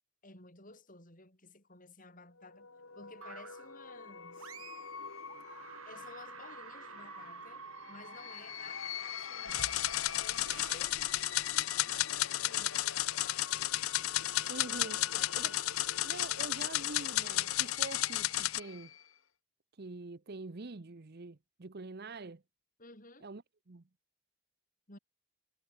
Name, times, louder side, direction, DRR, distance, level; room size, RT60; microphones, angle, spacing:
voice 1, 0.2-2.7 2.9-4.6 5.9-9.7 10.2-12.8 13.2-13.5 14.9-15.6 22.8-23.3 24.9-25.0, left 3 dB, 40° left, 7.7 m, -54 dB
sound 1, 2.4-19.2, left 6 dB, 70° left, 3.0 m, -46 dB
sound 2, 3.2-3.8 4.4-5.0 5.3-11.7, right 5 dB, 85° right, 4.7 m, -51 dB
sound 3, 9.5-18.6, left 15 dB, 85° left, 0.7 m, -33 dB
voice 2, 14.5-15.0 15.3-15.5 16.0-18.9 19.8-22.4 23.2-23.8, right 3 dB, 50° right, 0.8 m, -45 dB
head